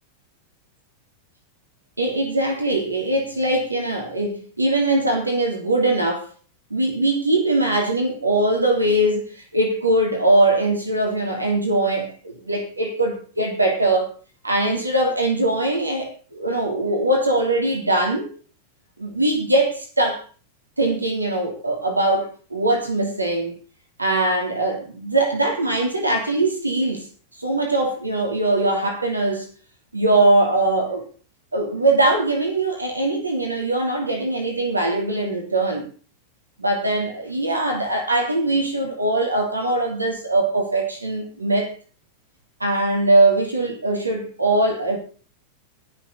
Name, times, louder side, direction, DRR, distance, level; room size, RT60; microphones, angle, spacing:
voice 1, 2.0-6.3 6.7-14.1 14.4-18.3 19.0-20.2 20.8-23.5 24.0-27.1 27.4-29.5 29.9-31.1 31.5-35.9 36.6-41.7 42.6-45.0, right 2 dB, 80° right, 3.2 m, -21 dB
21.5 x 7.1 x 4.0 m
figure-of-eight pair, 90°, 0 cm